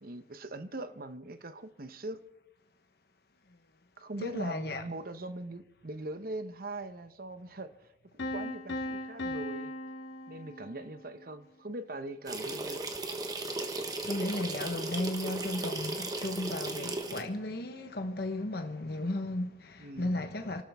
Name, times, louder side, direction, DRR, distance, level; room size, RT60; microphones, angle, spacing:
voice 1, 0.0-2.2 4.0-9.7 10.3-12.8 19.8-20.1, right 2 dB, 55° right, 0.9 m, -41 dB
voice 2, 4.2-4.8 14.0-20.6, left 1 dB, 60° left, 1.1 m, -35 dB
Piano, 8.2-11.1, left 1 dB, 85° left, 1.6 m, -38 dB
sound 1, 12.3-17.2, right 2 dB, 20° right, 1.3 m, -36 dB
28.5 x 12.5 x 3.6 m
head